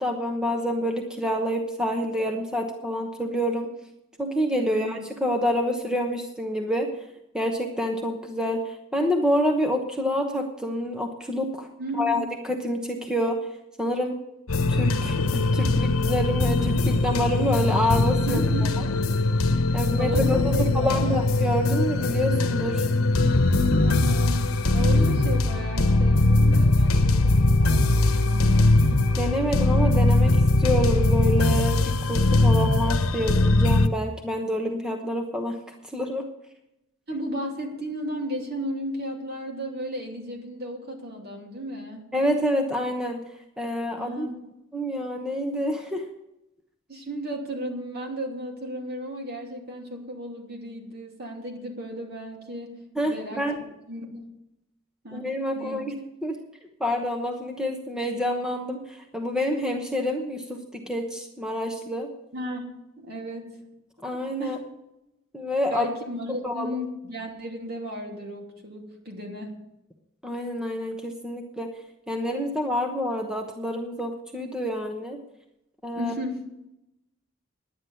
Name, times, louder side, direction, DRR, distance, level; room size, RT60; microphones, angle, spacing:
voice 1, 0.0-3.7 4.2-6.9 7.3-11.7 12.0-13.4 13.8-14.2 14.7-18.4 19.7-22.9 29.2-36.3 42.1-43.2 43.6-44.3 44.7-46.0 53.0-53.6 55.1-56.4 56.8-62.1 64.0-64.6 65.3-65.8 66.3-66.8 70.2-71.7 72.1-75.2 75.8-76.1, equal, 5° right, 3 dB, 1.0 m, -27 dB
voice 2, 11.8-12.3 18.3-18.7 19.1-19.2 19.7-21.2 23.8-28.8 37.1-42.0 44.0-44.4 46.9-54.3 55.0-55.3 55.5-55.8 62.3-63.6 64.0-64.1 64.4-64.6 65.7-69.6 75.9-76.5, equal, 50° right, 1 dB, 2.7 m, -34 dB
sound 1, 14.5-33.9, left 2 dB, 85° left, 1.0 m, -21 dB
11.0 x 9.7 x 7.0 m, 0.87 s
head